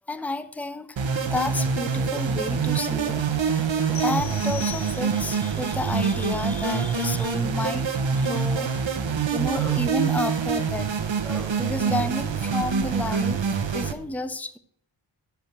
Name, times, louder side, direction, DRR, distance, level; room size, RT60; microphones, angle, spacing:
voice 1, 0.1-10.9 11.2-13.4 13.7-14.6, left 2 dB, 5° left, 0.7 m, -31 dB
sound 1, 1.0-13.9, right 6 dB, 75° right, 1.2 m, -25 dB
sound 2, 3.9-5.5, left 11 dB, 60° left, 1.0 m, -39 dB
10.5 x 5.0 x 7.4 m
cardioid pair, 55°, 46 cm